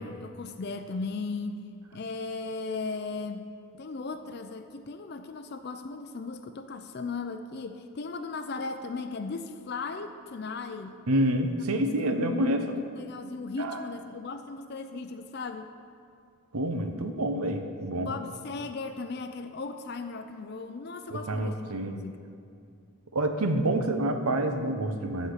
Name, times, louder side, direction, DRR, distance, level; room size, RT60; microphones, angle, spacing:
voice 1, 0.0-1.6 1.9-3.5 3.7-11.0 11.7-15.7 18.0-21.6 21.9-22.2, left 4 dB, 50° left, 8 dB, 0.4 m, -37 dB
voice 2, 11.1-12.8 13.6-13.8 16.5-18.2 21.1-22.0 23.1-25.3, right 1 dB, 90° right, 6 dB, 0.9 m, -28 dB
13.0 x 4.3 x 8.4 m, 2.4 s
head